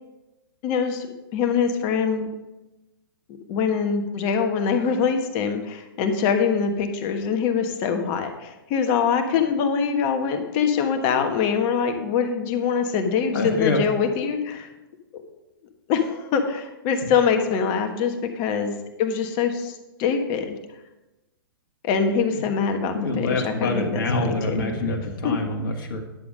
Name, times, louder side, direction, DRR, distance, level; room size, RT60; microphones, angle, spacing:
voice 1, 0.6-1.1 1.3-2.3 3.5-14.7 15.9-19.7 20.0-20.6 21.9-23.9 24.2-24.7 25.2-25.3, left 6 dB, 40° left, 6 dB, 1.4 m, -24 dB
voice 2, 13.3-13.8 17.0-17.1 22.9-26.0, left 2 dB, 65° left, 2 dB, 1.6 m, -25 dB
10.5 x 7.1 x 5.0 m, 1.0 s
hypercardioid pair, 115°, 12 cm